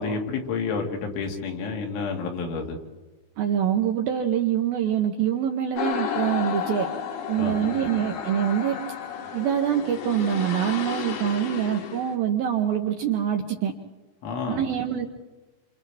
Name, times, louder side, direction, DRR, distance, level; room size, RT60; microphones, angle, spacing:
voice 1, 0.0-2.8 7.4-7.7 14.2-14.6, left 4 dB, 80° left, 1 dB, 4.5 m, -30 dB
voice 2, 3.4-6.9 7.3-8.8 9.3-13.7 14.5-15.1, right 9 dB, 75° right, 3 dB, 2.2 m, -25 dB
sound 1, 5.8-12.2, left 8 dB, 65° left, 3.3 m, -32 dB
29.0 x 26.5 x 3.5 m, 1.3 s
omnidirectional pair, 5.4 m